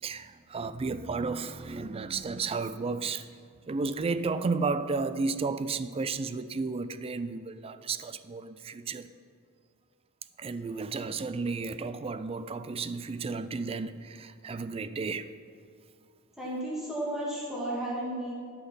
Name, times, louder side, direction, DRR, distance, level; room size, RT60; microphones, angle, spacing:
voice 1, 0.0-3.3 3.7-9.1 10.4-15.3, right 4 dB, 25° right, 0.3 m, -33 dB
voice 2, 16.4-18.3, right 1 dB, ahead, 2.4 m, -33 dB
12.0 x 5.9 x 5.6 m
head